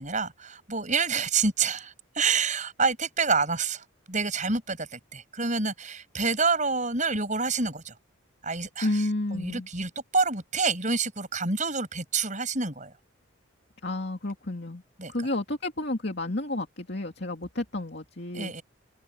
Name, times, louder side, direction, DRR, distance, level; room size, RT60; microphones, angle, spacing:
voice 1, 0.0-7.9 8.4-8.9 9.3-12.9 15.0-15.1 18.3-18.6, right 4 dB, 35° right, 7.6 m, -28 dB
voice 2, 8.8-9.7 13.8-14.8 15.1-18.5, left 2 dB, 50° left, 2.6 m, -31 dB
open air
head